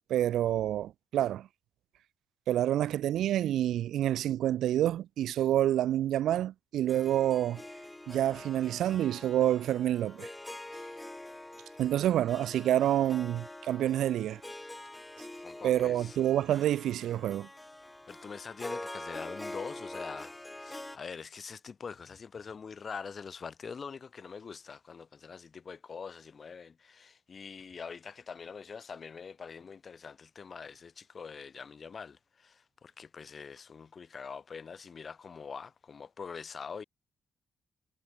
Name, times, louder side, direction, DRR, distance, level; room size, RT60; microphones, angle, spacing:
voice 1, 0.1-1.5 2.5-7.6 8.1-10.3 11.8-14.4 15.6-17.5, right 12 dB, 80° right, 3.3 m, -28 dB
Harp, 6.9-21.0, left 1 dB, 10° left, 5.8 m, -45 dB
voice 2, 15.4-16.2 18.1-36.8, left 5 dB, 35° left, 4.3 m, -44 dB
cardioid pair, 150°, 0 cm